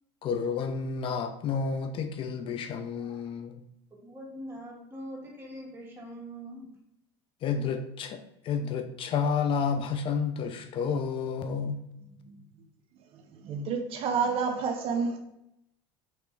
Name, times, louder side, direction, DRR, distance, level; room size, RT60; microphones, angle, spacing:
voice 1, 0.2-3.6 7.4-8.2 8.4-11.8, left 6 dB, 45° left, 0.4 m, -30 dB
voice 2, 4.0-6.7, equal, 20° right, 1.6 m, -42 dB
voice 3, 13.4-15.2, right 5 dB, 50° right, 0.5 m, -29 dB
3.3 x 3.0 x 4.4 m
supercardioid pair, 105°, 12 cm